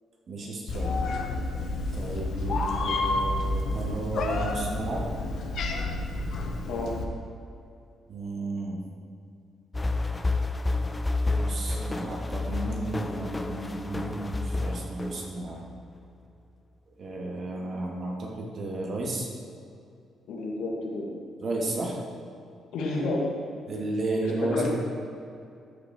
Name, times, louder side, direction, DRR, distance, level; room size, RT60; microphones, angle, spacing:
voice 1, 0.3-1.2 1.9-5.0 8.1-8.8 11.3-15.6 17.0-19.3 21.4-22.0 23.7-24.7, right 2 dB, 50° right, -2 dB, 2.3 m, -33 dB
Meow, 0.7-7.0, left 2 dB, 65° left, 1.1 m, -29 dB
sound 1, 9.7-15.7, left 2 dB, 20° left, 0.6 m, -30 dB
voice 2, 20.3-21.1 22.7-23.2 24.2-24.7, left 2 dB, 85° left, -1 dB, 2.0 m, -30 dB
13.0 x 6.2 x 4.5 m, 2.5 s
cardioid pair, 90°, 0 cm